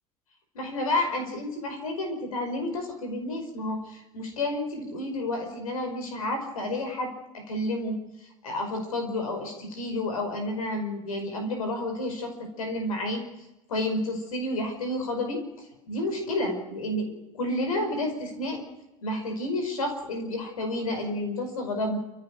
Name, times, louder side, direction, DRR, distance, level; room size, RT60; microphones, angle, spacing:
voice 1, 0.5-8.0 8.4-13.2 13.7-18.6 19.0-22.0, left 1 dB, 85° left, 6 dB, 5.2 m, -30 dB
28.5 x 15.0 x 6.6 m, 0.93 s
hypercardioid pair, 75°, 18 cm